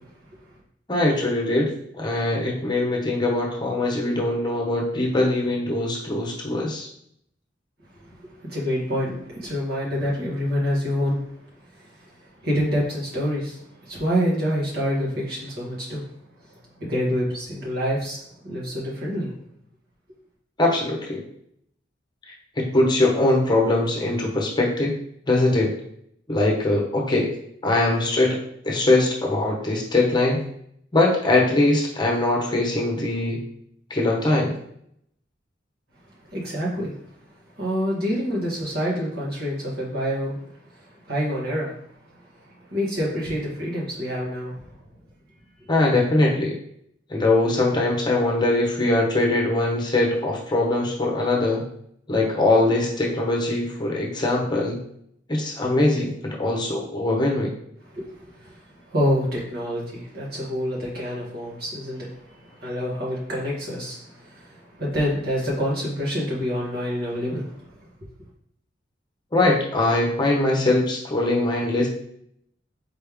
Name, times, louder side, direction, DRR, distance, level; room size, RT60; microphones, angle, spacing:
voice 1, 0.9-6.9 20.6-21.2 22.6-24.9 25.3-25.7 26.3-27.3 27.6-28.4 28.6-30.4 30.9-33.4 33.9-34.6 45.7-46.6 47.1-51.7 52.1-54.8 55.3-57.5 69.3-71.9, left 2 dB, 25° left, -1 dB, 0.9 m, -22 dB
voice 2, 8.5-11.2 12.4-13.6 13.8-16.0 16.8-18.2 18.4-19.3 36.3-37.0 37.6-40.4 41.1-41.7 42.7-44.6 57.9-58.5 58.9-62.1 62.4-67.6, equal, 55° right, -6 dB, 1.8 m, -26 dB
4.3 x 3.2 x 3.5 m, 0.69 s
head